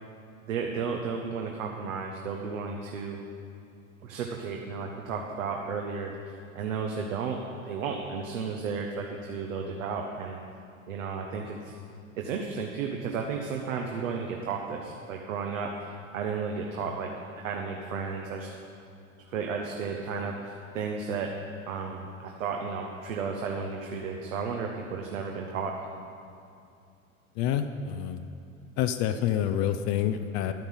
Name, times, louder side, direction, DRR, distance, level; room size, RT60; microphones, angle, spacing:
voice 1, 0.5-3.2 4.0-7.4 7.6-10.4 10.9-11.8 12.2-15.7 16.1-18.5 19.3-21.3 21.7-26.0, right 5 dB, 65° right, 2 dB, 1.1 m, -33 dB
voice 2, 27.4-28.2 28.8-30.5, left 10 dB, 35° left, 8 dB, 0.6 m, -27 dB
11.5 x 9.1 x 5.5 m, 2.5 s
figure-of-eight pair, 80°, 43 cm